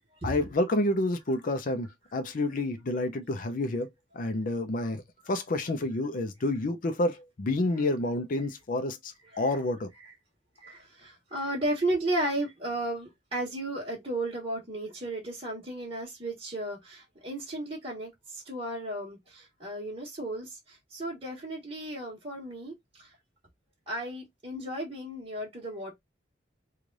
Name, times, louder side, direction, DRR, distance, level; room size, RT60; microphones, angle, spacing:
voice 1, 0.2-3.9 4.1-5.0 5.3-9.9, left 2 dB, 45° left, 0.5 m, -29 dB
voice 2, 10.6-23.1 23.9-25.9, right 1 dB, 35° right, 1.3 m, -34 dB
3.2 x 2.4 x 3.8 m
head